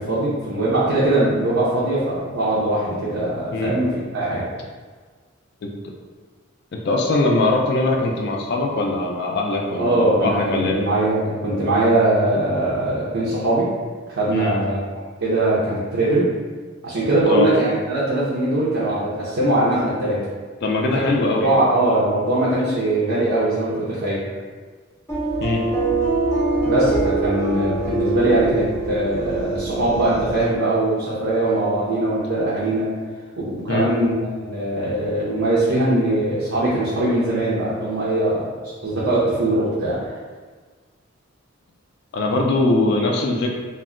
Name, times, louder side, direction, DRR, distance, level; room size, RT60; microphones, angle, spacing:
voice 1, 0.0-4.4 9.8-13.7 14.1-16.3 16.8-20.2 21.4-24.2 26.6-32.9 33.4-34.1 34.4-38.5 38.8-40.0, right 1 dB, 70° right, -8 dB, 0.6 m, -21 dB
voice 2, 6.7-10.8 14.3-14.5 17.3-17.5 20.6-21.7 25.4-25.6 33.7-33.9 42.1-43.5, left 2 dB, 50° left, 0 dB, 0.3 m, -21 dB
sound 1, 25.1-30.4, right 3 dB, 15° left, 0.6 m, -23 dB
2.2 x 2.1 x 3.6 m, 1.5 s
head